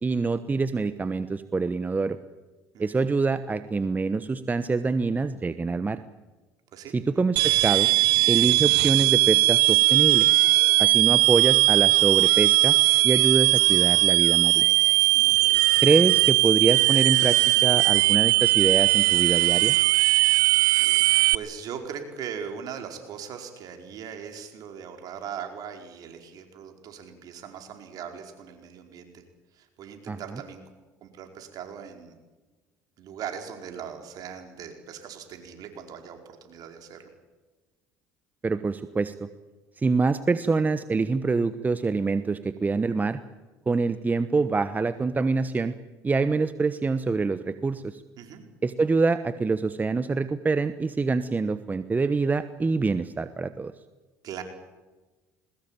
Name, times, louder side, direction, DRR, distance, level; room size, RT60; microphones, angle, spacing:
voice 1, 0.0-2.2 2.8-6.0 6.9-7.9 8.3-10.3 10.8-12.8 13.0-14.7 15.8-19.8 30.1-30.2 38.4-39.3 39.8-43.2 43.7-45.8 46.0-48.0 48.6-53.7, right 4 dB, 20° right, 12 dB, 1.1 m, -25 dB
sound 1, 7.4-21.4, right 23 dB, 75° right, 0.7 m, -19 dB
voice 2, 15.2-15.7 20.6-20.9 21.3-29.2 29.5-30.6 31.0-32.2 33.0-37.0 48.2-48.4 54.2-54.4, right 7 dB, 60° right, 5 dB, 4.8 m, -40 dB
21.5 x 20.5 x 9.0 m, 1.2 s
supercardioid pair, 75°, 7 cm